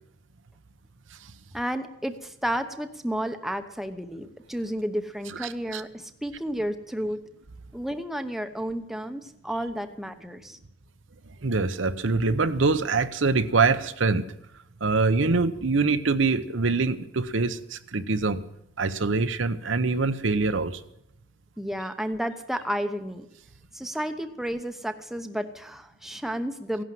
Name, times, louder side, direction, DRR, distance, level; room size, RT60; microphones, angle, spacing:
voice 1, 1.5-7.2 7.7-10.6 21.6-23.3 23.7-26.8, equal, ahead, 7 dB, 0.9 m, -32 dB
voice 2, 5.4-5.8 11.4-14.3 14.8-18.4 18.8-20.8, right 4 dB, 70° right, 10 dB, 0.9 m, -24 dB
16.0 x 11.0 x 7.7 m, 0.81 s
head